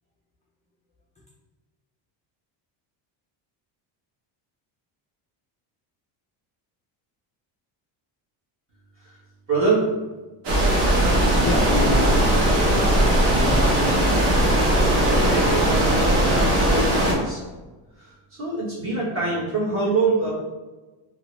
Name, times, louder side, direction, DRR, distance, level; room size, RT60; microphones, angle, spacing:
voice 1, 9.5-9.9 14.8-17.4 18.0-20.3, right 3 dB, 25° right, -7 dB, 1.3 m, -25 dB
sound 1, 10.4-17.1, right 1 dB, 60° right, 1.1 m, -19 dB
voice 2, 11.4-14.0, left 2 dB, 15° left, -5 dB, 0.3 m, -29 dB
2.8 x 2.7 x 3.1 m, 1.2 s
cardioid pair, 145°, 47 cm